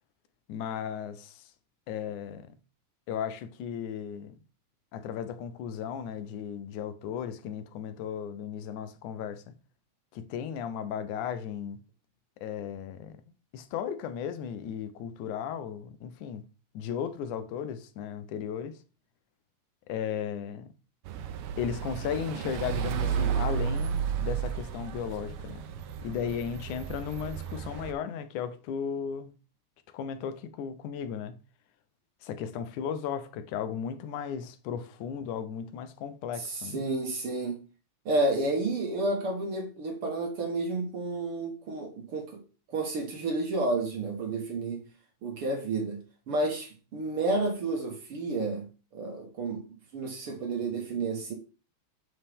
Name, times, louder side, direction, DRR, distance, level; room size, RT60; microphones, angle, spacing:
voice 1, 0.5-1.4 1.9-2.5 3.1-4.3 4.9-9.4 10.1-11.8 12.4-13.2 13.5-16.4 16.7-18.8 19.9-20.7 21.6-25.6 26.0-29.3 29.9-31.3 32.2-36.8, left 8 dB, 90° left, 2.3 m, -35 dB
sound 1, 21.1-27.9, right 8 dB, 80° right, 1.2 m, -33 dB
voice 2, 36.4-37.6 38.1-42.4 42.7-44.9 45.2-46.0 46.3-48.7 48.9-49.7 49.9-51.3, right 2 dB, 55° right, 2.0 m, -31 dB
7.5 x 7.0 x 3.5 m
omnidirectional pair, 3.4 m